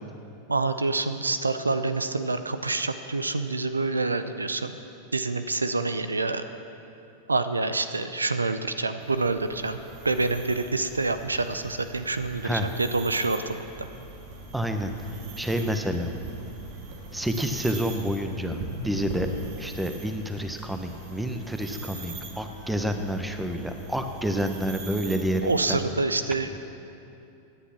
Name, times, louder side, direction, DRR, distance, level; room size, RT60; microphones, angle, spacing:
voice 1, 0.5-4.8 5.1-6.4 7.3-9.8 10.0-13.9 25.4-26.5, right 3 dB, 90° right, 11 dB, 0.6 m, -27 dB
sound 1, 9.0-25.8, right 3 dB, 55° right, 2.6 m, -41 dB
voice 2, 14.5-15.1 15.4-16.1 17.1-18.6 18.8-19.3 19.6-25.8, equal, 5° right, 6 dB, 1.2 m, -29 dB
17.0 x 10.0 x 6.0 m, 2.7 s
figure-of-eight pair, 90°, 0 cm